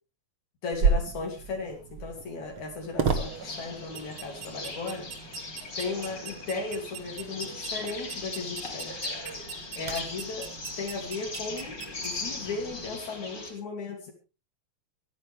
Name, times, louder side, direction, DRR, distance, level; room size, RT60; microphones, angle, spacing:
voice 1, 0.6-5.1 5.8-8.9 9.8-10.5 10.8-11.8 12.0-14.1, left 4 dB, 75° left, 1 dB, 4.2 m, -36 dB
sound 1, 0.7-13.0, right 5 dB, 50° right, 2.2 m, -34 dB
sound 2, 3.1-13.5, left 3 dB, 40° left, 4.1 m, -39 dB
24.0 x 10.0 x 3.5 m, 0.32 s
omnidirectional pair, 3.3 m